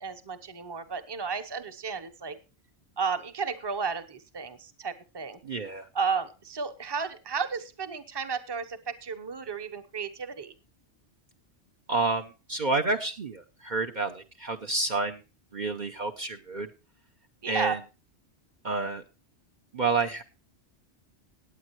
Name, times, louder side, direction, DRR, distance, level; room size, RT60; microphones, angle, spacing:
voice 1, 0.0-2.4 3.0-5.4 5.9-10.5 17.4-17.8, right 5 dB, 25° right, 10 dB, 0.9 m, -33 dB
voice 2, 5.4-5.9 11.9-15.2 15.5-16.7 17.5-17.8 18.6-19.0 19.7-20.2, right 3 dB, 45° right, 4 dB, 0.9 m, -29 dB
18.0 x 8.9 x 3.1 m, 0.31 s
omnidirectional pair, 1.2 m